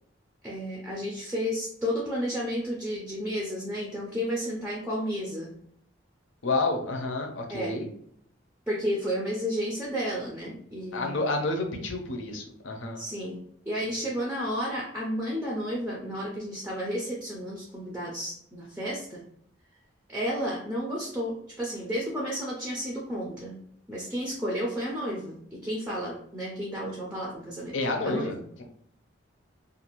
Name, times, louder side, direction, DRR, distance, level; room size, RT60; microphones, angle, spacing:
voice 1, 0.4-5.5 7.5-7.7 8.7-11.3 13.0-13.4 13.7-19.2 20.1-23.6 23.9-27.8 28.1-28.3, equal, 5° right, -4 dB, 0.4 m, -32 dB
voice 2, 6.4-7.9 10.9-13.1 27.7-28.6, left 2 dB, 75° left, 3 dB, 0.6 m, -30 dB
2.5 x 2.5 x 2.9 m, 0.67 s
head